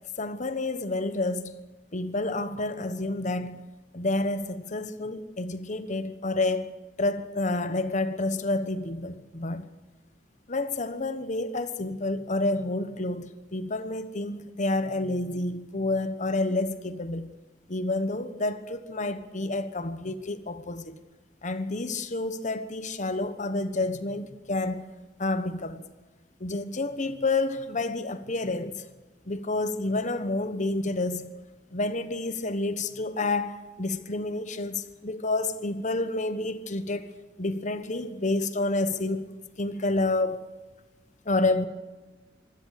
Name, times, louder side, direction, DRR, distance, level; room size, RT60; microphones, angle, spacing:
voice 1, 0.2-1.6 1.9-3.6 3.9-9.7 10.5-17.3 17.7-21.0 21.4-24.9 25.2-25.9 26.4-28.8 29.3-31.3 31.7-37.1 37.4-39.3 39.6-40.4 41.2-41.7, left 2 dB, 40° left, 1.2 m, -29 dB
24.0 x 17.0 x 6.7 m
head